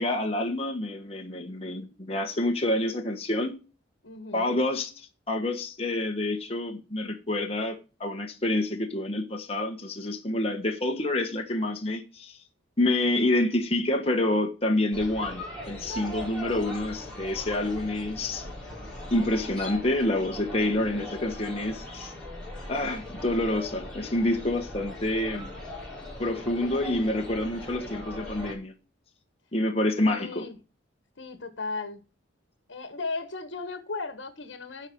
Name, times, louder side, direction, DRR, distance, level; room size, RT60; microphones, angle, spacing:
voice 1, 0.0-3.6 4.3-12.4 12.8-18.5 19.1-22.1 22.7-25.6 26.2-28.7 29.5-30.4, left 1 dB, 35° left, 1.3 m, -28 dB
voice 2, 4.0-4.5 20.8-21.1 30.1-30.6 31.2-32.0 32.7-34.9, left 3 dB, 75° left, 1.4 m, -36 dB
sound 1, 14.9-28.5, left 1 dB, 5° left, 4.7 m, -39 dB
11.5 x 5.2 x 6.1 m
head